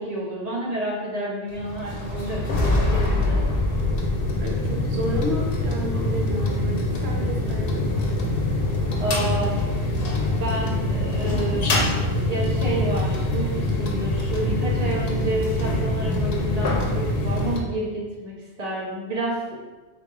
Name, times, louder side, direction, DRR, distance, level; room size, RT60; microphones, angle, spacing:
voice 1, 0.0-3.4 9.0-9.6 10.4-11.9 12.3-19.5, right 1 dB, 40° right, -5 dB, 1.1 m, -29 dB
sound 1, 1.5-17.6, left 2 dB, 65° left, 0.9 m, -24 dB
voice 2, 4.4-7.9, equal, 75° right, -1 dB, 1.1 m, -31 dB
3.9 x 3.5 x 3.7 m, 1.2 s
omnidirectional pair, 1.1 m